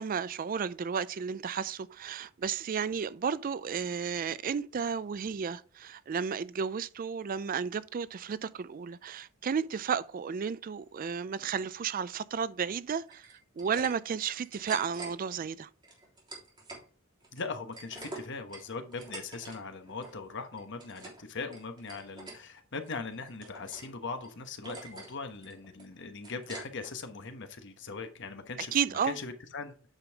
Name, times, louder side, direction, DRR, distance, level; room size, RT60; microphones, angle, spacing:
voice 1, 0.0-15.7 28.7-29.2, right 6 dB, 40° right, 0.3 m, -33 dB
sound 1, 13.1-13.9 14.2-15.1 15.8-16.8 17.2-19.6 19.8-20.2 20.5-21.2 21.5-22.4 22.8-23.9 24.2-24.3 24.6-25.1 25.4-26.9, right 2 dB, 20° right, 3.6 m, -46 dB
voice 2, 17.3-29.7, left 4 dB, 55° left, 1.1 m, -40 dB
9.1 x 5.3 x 3.5 m
head